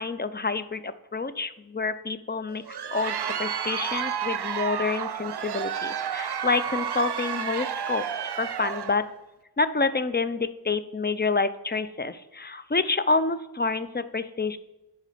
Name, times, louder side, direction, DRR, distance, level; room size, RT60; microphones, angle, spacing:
voice 1, 0.0-8.0 8.4-9.0 9.6-14.6, left 4 dB, 25° left, 12 dB, 0.5 m, -28 dB
Crowd, 2.5-9.1, right 8 dB, 80° right, 0.5 m, -31 dB
10.5 x 4.2 x 5.0 m, 0.98 s
wide cardioid pair, 55°, 39 cm